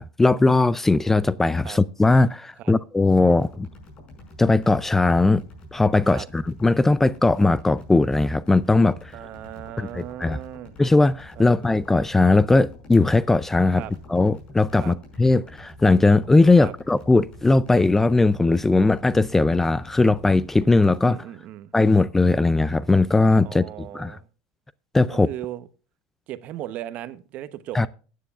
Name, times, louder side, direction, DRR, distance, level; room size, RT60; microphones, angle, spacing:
voice 1, 0.0-3.7 4.4-5.4 5.7-9.1 9.8-10.4 10.8-13.8 14.1-21.2 21.7-23.7 23.9-24.2 24.9-25.3 27.7-27.9, left 3 dB, 10° left, 0.4 m, -19 dB
sound 1, 3.2-21.0, left 1 dB, 35° left, 5.6 m, -46 dB
voice 2, 9.1-10.7 11.4-11.7 13.8-13.9 14.8-15.0 16.6-16.7 21.1-21.7 23.4-24.3 25.1-25.6 26.3-27.9, right 12 dB, 50° right, 0.9 m, -37 dB
15.5 x 9.4 x 2.4 m
supercardioid pair, 115°, 3 cm